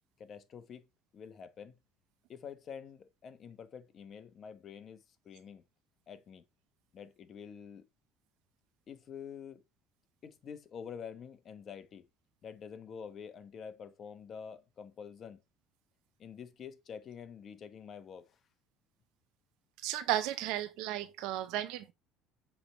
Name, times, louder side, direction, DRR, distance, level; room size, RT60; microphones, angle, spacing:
voice 1, 0.2-0.9 1.1-1.7 2.3-5.6 6.1-6.4 6.9-7.8 8.9-9.6 10.2-12.0 12.4-15.4 16.2-18.4, left 7 dB, 45° left, 1.1 m, -47 dB
voice 2, 19.8-21.9, right 13 dB, 75° right, 0.7 m, -34 dB
7.0 x 3.5 x 4.3 m
supercardioid pair, 80°, 0 cm